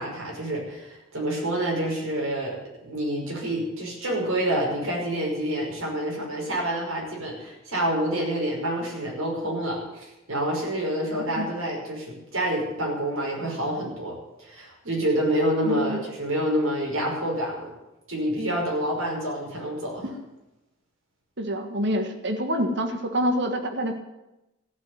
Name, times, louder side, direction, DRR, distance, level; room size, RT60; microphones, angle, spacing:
voice 1, 0.0-17.7 18.1-20.1, right 1 dB, 80° right, -2 dB, 5.7 m, -28 dB
voice 2, 11.1-11.5 15.6-16.0 21.4-24.0, equal, 60° right, 5 dB, 1.6 m, -27 dB
14.5 x 8.2 x 9.5 m, 0.97 s
head